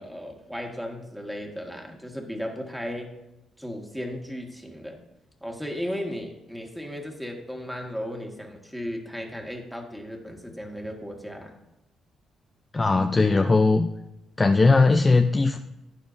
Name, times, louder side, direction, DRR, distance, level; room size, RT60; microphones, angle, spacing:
voice 1, 0.0-3.2 3.6-5.0 5.4-11.5, equal, ahead, 1 dB, 1.7 m, -35 dB
voice 2, 12.7-13.9 14.4-15.6, left 3 dB, 25° left, 6 dB, 0.5 m, -19 dB
12.0 x 9.3 x 2.6 m, 0.93 s
cardioid pair, 90°, 0 cm